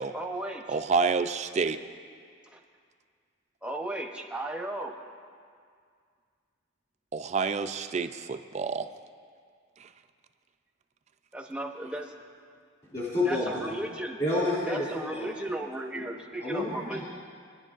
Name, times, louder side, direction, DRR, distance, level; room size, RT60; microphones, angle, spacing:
voice 1, 0.1-0.8 2.5-2.6 3.6-4.9 11.3-12.1 13.2-14.2 14.7-17.0, right 1 dB, 5° right, 2 dB, 0.7 m, -35 dB
voice 2, 0.7-1.8 7.1-8.9 9.8-9.9, right 4 dB, 35° right, 9 dB, 0.3 m, -28 dB
voice 3, 12.9-13.7 14.2-15.6 15.9-16.0 16.4-17.0, left 2 dB, 35° left, -9 dB, 2.6 m, -30 dB
22.0 x 10.5 x 2.5 m, 2.1 s
head